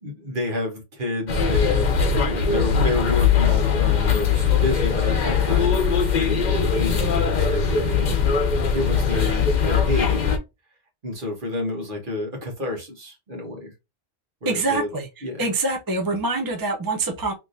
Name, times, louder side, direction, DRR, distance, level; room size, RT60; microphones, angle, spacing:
voice 1, 0.0-8.2 8.7-10.4 11.0-13.7 14.4-14.9 15.2-15.5, left 2 dB, 55° right, 1.6 m, -29 dB
sound 1, 1.3-10.4, left 6 dB, 50° left, 0.8 m, -20 dB
voice 2, 14.4-15.1 15.4-17.3, right 3 dB, 25° right, 0.6 m, -25 dB
3.5 x 2.9 x 2.6 m
omnidirectional pair, 1.1 m